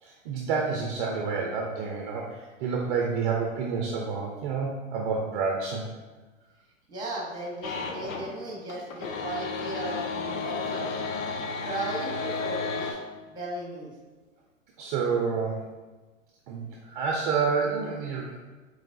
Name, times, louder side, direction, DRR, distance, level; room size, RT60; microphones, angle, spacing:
voice 1, 0.0-5.9 14.8-15.7 16.5-18.4, right 5 dB, 40° right, 0 dB, 0.5 m, -29 dB
voice 2, 6.9-10.9 11.6-13.9, right 2 dB, 10° right, -3 dB, 1.0 m, -36 dB
sound 1, 7.6-8.3 8.6-12.9, left 4 dB, 80° left, 0.7 m, -32 dB
4.6 x 3.2 x 2.6 m, 1.3 s
hypercardioid pair, 120°, 40 cm